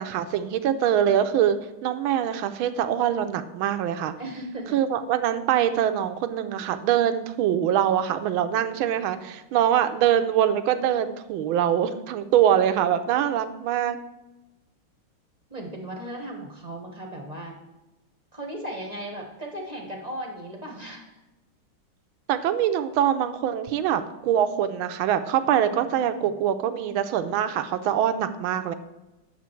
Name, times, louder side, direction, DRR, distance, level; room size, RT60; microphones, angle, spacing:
voice 1, 0.0-1.6 1.8-4.1 4.7-14.0 22.3-28.7, right 10 dB, 80° right, 10 dB, 1.5 m, -23 dB
voice 2, 4.2-4.8 9.0-9.2 15.5-17.6 18.3-21.2 25.5-26.3, right 1 dB, 25° right, 1 dB, 0.9 m, -37 dB
9.5 x 6.9 x 4.4 m, 1.0 s
omnidirectional pair, 2.3 m